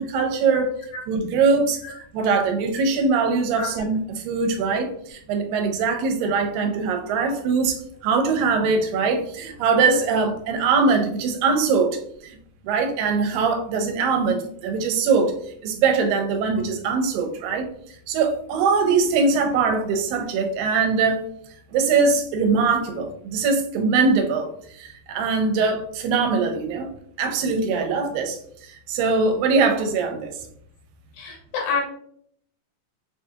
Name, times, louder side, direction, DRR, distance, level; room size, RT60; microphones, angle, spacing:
voice 1, 0.0-0.7 1.1-12.0 12.2-12.4 12.6-15.3 15.6-17.7 18.1-21.2 21.7-26.9 27.2-30.3, right 4 dB, 90° right, 5 dB, 2.3 m, -22 dB
voice 2, 31.1-31.8, left 5 dB, 75° left, -1 dB, 2.7 m, -28 dB
6.4 x 2.7 x 2.3 m, 0.66 s
omnidirectional pair, 4.0 m